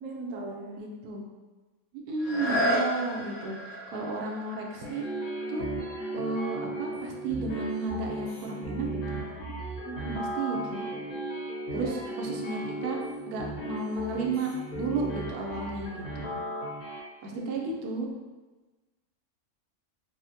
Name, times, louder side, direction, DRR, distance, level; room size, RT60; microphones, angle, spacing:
voice 1, 0.0-0.8 9.8-10.2 11.7-12.2 17.3-17.5, right 2 dB, 70° right, -1 dB, 0.9 m, -38 dB
voice 2, 0.8-1.3 2.1-5.0 5.5-5.7 6.1-9.3 10.2-10.9 11.7-13.0 13.3-16.4 17.2-18.1, right 3 dB, 90° right, -1 dB, 1.1 m, -33 dB
sound 1, 2.2-7.8 8.4-8.5, equal, 70° left, 1.0 m, -34 dB
sound 2, 4.8-17.0, right 1 dB, 85° left, 1.6 m, -36 dB
4.1 x 2.1 x 2.7 m, 1.2 s
omnidirectional pair, 1.6 m